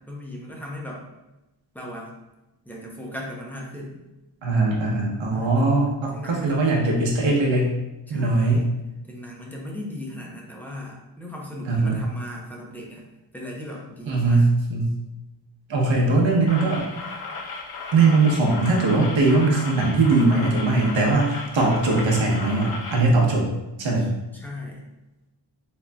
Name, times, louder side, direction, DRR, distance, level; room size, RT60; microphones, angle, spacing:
voice 1, 0.1-1.0 1.7-2.1 2.6-4.0 5.3-5.7 6.1-6.6 8.1-8.7 9.1-13.1 13.3-14.5 24.0-24.9, left 1 dB, 5° left, -2 dB, 0.6 m, -37 dB
voice 2, 4.4-7.7 8.1-8.7 11.7-12.0 14.1-14.9 15.7-16.8 17.9-23.5 23.8-24.1, right 3 dB, 75° right, -2 dB, 0.9 m, -20 dB
sound 1, 16.5-23.1, left 3 dB, 55° left, 0.5 m, -35 dB
3.7 x 3.1 x 2.2 m, 0.99 s
wide cardioid pair, 120°, 46 cm